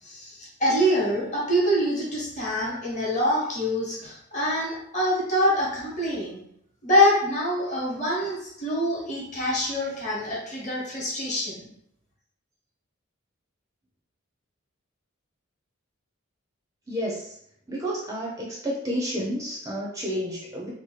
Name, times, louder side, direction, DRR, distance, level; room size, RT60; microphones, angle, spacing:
voice 1, 0.0-6.4 6.8-11.7, equal, 35° left, -5 dB, 1.0 m, -25 dB
voice 2, 16.9-17.4 17.7-20.7, equal, 15° right, -4 dB, 0.4 m, -30 dB
2.8 x 2.1 x 3.1 m, 0.72 s
head